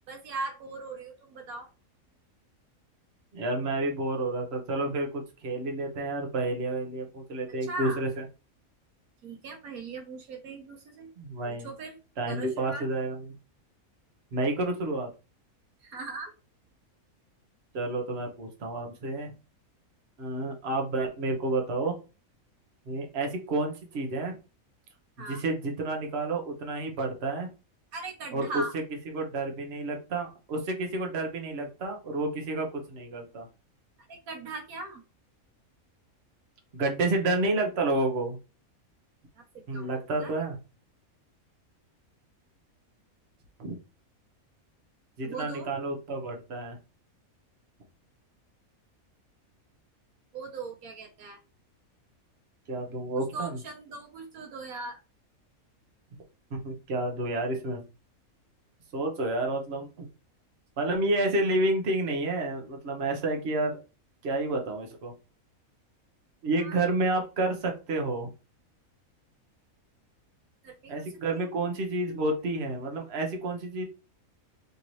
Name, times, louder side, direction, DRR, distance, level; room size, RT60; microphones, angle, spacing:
voice 1, 0.1-1.7 7.6-8.0 9.2-11.1 11.4-11.9 12.2-12.9 15.8-16.3 25.2-25.4 27.9-28.7 34.1-35.0 39.3-39.9 40.2-40.3 45.2-45.7 50.3-51.4 53.3-55.0 66.6-66.8 70.6-71.0 71.3-71.5, right 3 dB, 80° right, 3 dB, 1.5 m, -39 dB
voice 2, 3.3-8.1 11.2-11.7 12.2-13.3 14.3-15.1 17.7-19.3 20.2-22.0 22.9-24.3 25.3-27.5 28.3-28.6 29.1-33.5 36.7-38.4 39.7-40.6 43.6-43.7 45.2-46.8 52.7-53.6 56.5-57.8 58.9-60.1 60.8-63.8 64.2-65.1 66.4-68.3 70.9-73.8, right 2 dB, 50° right, 2 dB, 1.2 m, -30 dB
5.2 x 2.8 x 3.1 m, 0.31 s
omnidirectional pair, 1.5 m